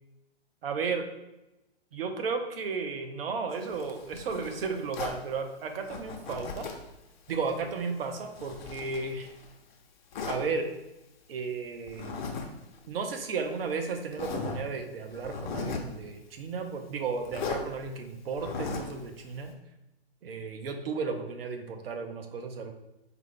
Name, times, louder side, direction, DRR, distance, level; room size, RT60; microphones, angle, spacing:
voice 1, 0.6-1.1 1.9-6.7 7.3-9.3 10.3-10.7 11.3-12.1 12.9-19.5 20.2-22.7, right 4 dB, 65° right, 5 dB, 0.7 m, -34 dB
Zipper (clothing), 3.5-5.2 5.9-6.9 7.3-9.5 10.1-10.4 11.9-12.5 12.7-12.9 13.6-13.7 14.1-14.6 15.1-15.9 17.2-17.6 18.3-19.0, left 4 dB, 45° left, 0.7 m, -37 dB
4.7 x 2.5 x 3.3 m, 0.97 s
hypercardioid pair, 130°, 31 cm